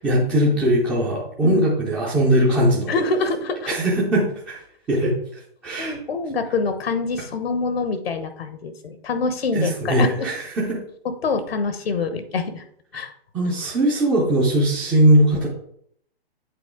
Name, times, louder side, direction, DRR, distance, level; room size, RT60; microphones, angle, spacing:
voice 1, 0.0-2.9 3.7-4.6 4.9-5.1 5.6-6.0 9.5-10.8 13.3-15.5, right 1 dB, 5° right, -7 dB, 0.4 m, -20 dB
voice 2, 2.9-3.8 5.8-10.1 11.2-12.6 12.9-13.1, left 4 dB, 70° left, 8 dB, 1.1 m, -25 dB
8.3 x 3.9 x 3.7 m, 0.66 s
hypercardioid pair, 155°, 31 cm